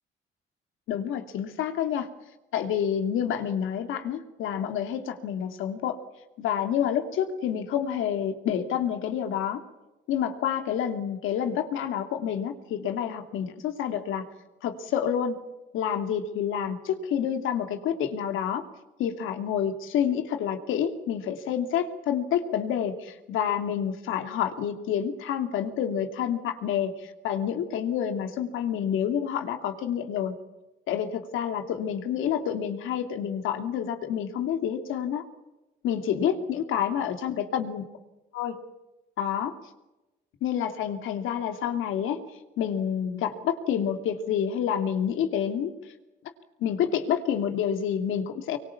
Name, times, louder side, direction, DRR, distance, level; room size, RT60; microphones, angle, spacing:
voice 1, 0.9-2.1 2.5-6.0 6.4-9.6 10.1-14.2 14.6-15.4 15.7-18.6 19.0-30.3 30.9-35.2 35.8-37.8 38.3-38.6 39.2-39.5 40.4-42.2 42.6-45.7 46.6-48.6, left 9 dB, 85° left, 6 dB, 2.7 m, -28 dB
25.5 x 23.5 x 7.1 m, 1.0 s
cardioid pair, 90°, 20 cm